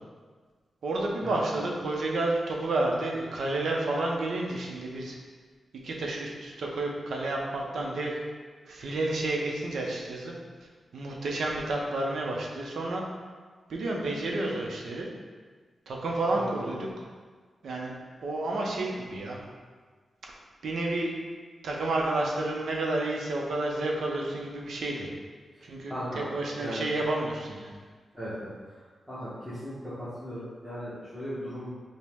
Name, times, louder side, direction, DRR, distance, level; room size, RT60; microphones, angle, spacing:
voice 1, 0.8-5.2 5.8-8.1 8.7-10.3 10.9-13.0 13.7-15.1 15.9-16.9 17.6-17.9 18.2-19.4 20.6-21.1 21.6-25.1 25.6-27.7, right 2 dB, 70° right, -1 dB, 0.6 m, -30 dB
voice 2, 16.3-16.7 25.5-26.2 26.6-26.8 28.1-28.5 28.8-31.7, equal, ahead, -12 dB, 0.8 m, -37 dB
5.2 x 2.1 x 3.4 m, 1.5 s
wide cardioid pair, 170°, 0 cm